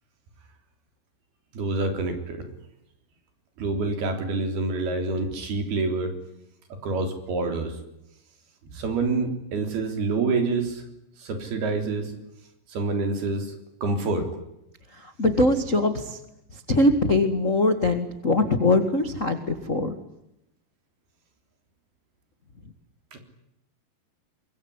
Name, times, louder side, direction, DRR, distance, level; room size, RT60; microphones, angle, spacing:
voice 1, 1.5-2.5 3.6-6.1 6.8-7.8 8.7-10.8 11.2-12.1 12.7-14.3 23.1-23.2, right 3 dB, 65° right, 7 dB, 5.4 m, -27 dB
voice 2, 15.2-16.2 16.7-19.9, left 2 dB, 45° left, 8 dB, 0.9 m, -22 dB
25.0 x 22.5 x 9.8 m, 0.82 s
omnidirectional pair, 4.9 m